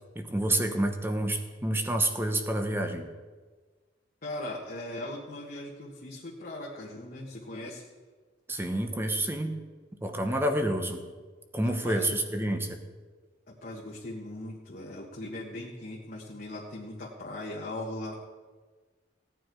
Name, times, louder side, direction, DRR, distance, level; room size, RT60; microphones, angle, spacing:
voice 1, 0.1-3.1 8.5-9.6 10.0-11.0 11.5-12.8, right 1 dB, 15° right, 5 dB, 1.0 m, -28 dB
voice 2, 4.2-7.8 11.6-12.2 13.5-18.2, left 1 dB, 50° left, -3 dB, 1.4 m, -39 dB
16.5 x 9.3 x 4.7 m, 1.4 s
head